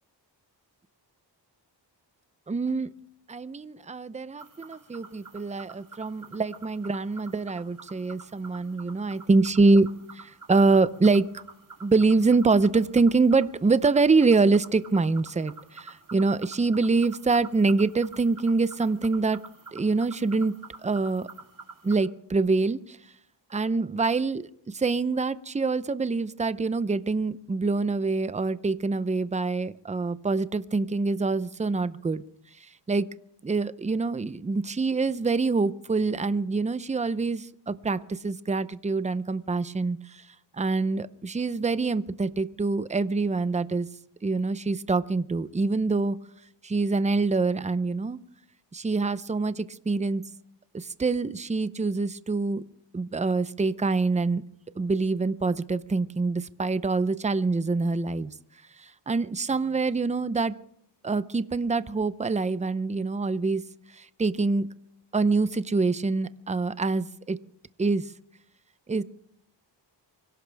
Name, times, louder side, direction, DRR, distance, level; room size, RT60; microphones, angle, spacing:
voice 1, 2.5-2.9 3.3-9.9 10.1-11.3 11.8-19.4 19.7-20.6 20.8-21.3 21.8-23.0 23.5-24.4 24.7-32.2 32.9-33.1 33.4-40.2 40.6-43.9 44.2-46.2 46.6-48.2 48.7-50.2 50.7-52.6 52.9-54.4 54.8-58.3 58.8-60.5 61.0-63.6 64.0-64.7 65.1-67.4 67.8-68.1 68.9-69.0, right 3 dB, 15° right, 15 dB, 0.6 m, -25 dB
sound 1, 4.4-21.9, right 4 dB, 45° right, 3.1 m, -48 dB
24.5 x 17.0 x 3.4 m, 0.69 s
wide cardioid pair, 100°, 44 cm